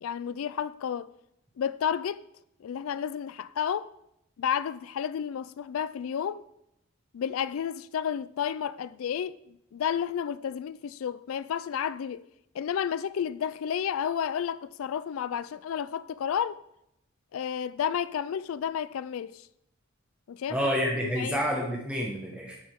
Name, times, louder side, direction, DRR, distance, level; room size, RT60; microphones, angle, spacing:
voice 1, 0.0-1.1 1.6-2.2 2.6-3.9 4.4-6.4 7.1-9.4 9.7-12.2 12.5-16.6 17.3-19.5 20.3-20.6 21.2-21.4, left 8 dB, 75° left, 0.3 m, -31 dB
voice 2, 20.5-22.6, equal, 5° right, 1.4 m, -29 dB
12.0 x 9.2 x 3.6 m
head